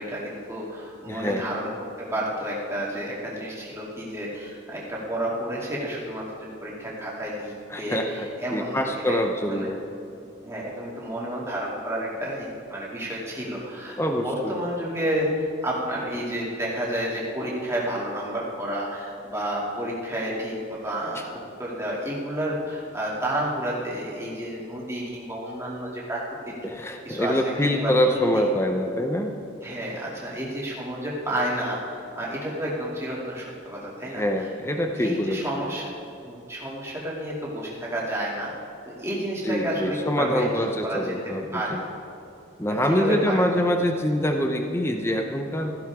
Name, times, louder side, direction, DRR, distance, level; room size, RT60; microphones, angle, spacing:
voice 1, 0.0-1.7 2.1-9.7 10.4-26.2 26.5-26.6 27.0-28.2 29.6-34.5 35.0-35.9 36.2-38.5 39.0-40.4 40.8-41.1 41.5-41.8 42.7-43.4, right 1 dB, 15° right, -6 dB, 2.7 m, -30 dB
voice 2, 1.1-1.5 7.7-8.3 8.5-9.8 14.0-14.6 26.6-29.3 34.0-35.4 39.5-41.8 42.6-45.8, equal, 15° left, 4 dB, 0.8 m, -25 dB
16.5 x 14.5 x 3.7 m, 2.7 s
head